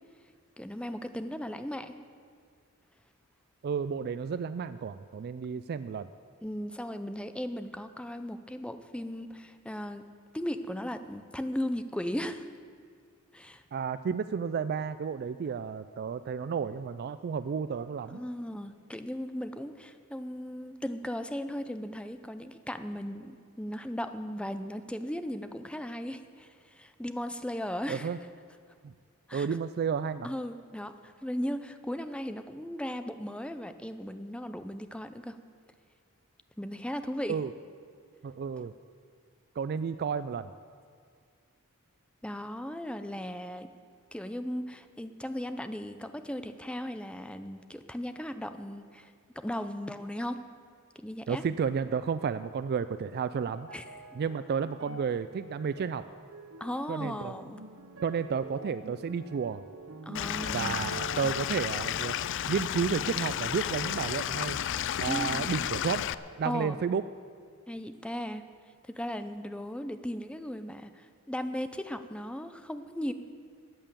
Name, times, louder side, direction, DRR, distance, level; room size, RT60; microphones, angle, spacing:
voice 1, 0.6-2.0 6.4-10.1 10.3-12.5 13.3-13.6 18.1-28.1 29.3-29.5 30.2-35.4 36.6-37.4 42.2-43.7 44.1-50.4 51.0-51.4 53.7-53.8 56.6-57.6 60.1-60.8 65.1-65.6 66.4-66.9 67.7-68.4 68.8-73.1, equal, 5° left, 9 dB, 0.6 m, -37 dB
voice 2, 3.6-6.1 13.7-18.2 27.9-28.2 28.8-28.9 29.3-30.3 37.3-37.5 38.2-38.7 39.6-40.5 51.3-53.7 54.1-56.0 56.9-57.3 58.0-59.6 60.5-62.2 62.5-64.6 65.0-66.1 66.4-67.0, right 6 dB, 45° right, 13 dB, 0.3 m, -32 dB
sound 1, 52.3-65.8 66.1-67.1 67.8-67.9, right 2 dB, 65° right, 0.9 m, -48 dB
Stream / Liquid, 60.1-66.1, left 10 dB, 60° left, 0.4 m, -32 dB
14.0 x 8.9 x 7.4 m, 2.2 s
head